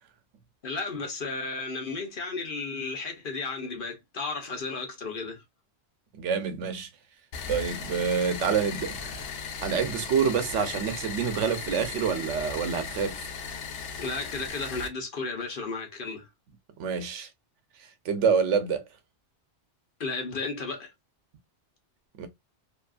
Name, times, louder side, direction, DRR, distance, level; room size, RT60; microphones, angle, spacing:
voice 1, 0.6-5.4 14.0-16.3 20.0-20.9, left 3 dB, 50° left, 0.9 m, -34 dB
voice 2, 6.1-6.9 7.5-9.2 9.6-13.2 16.8-17.3 18.0-18.8 22.2-22.3, right 6 dB, 90° right, 1.0 m, -27 dB
sound 1, 7.3-14.9, left 5 dB, 85° left, 0.9 m, -37 dB
2.7 x 2.4 x 2.2 m
omnidirectional pair, 1.2 m